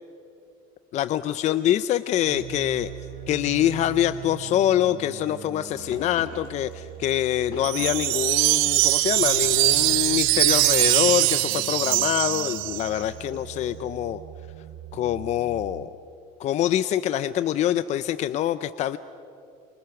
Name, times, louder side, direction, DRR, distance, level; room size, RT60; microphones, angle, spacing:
voice 1, 0.9-2.9 3.3-14.2 14.9-15.9 16.4-19.0, left 12 dB, 45° left, 14 dB, 0.6 m, -25 dB
sound 1, 2.2-15.9, right 12 dB, 55° right, 1.1 m, -41 dB
sound 2, 5.9-12.2, left 3 dB, 60° left, 6.8 m, -44 dB
Wind chime, 7.6-13.0, right 24 dB, 85° right, 0.5 m, -22 dB
28.5 x 25.0 x 6.0 m, 2.5 s
supercardioid pair, 125°, 17 cm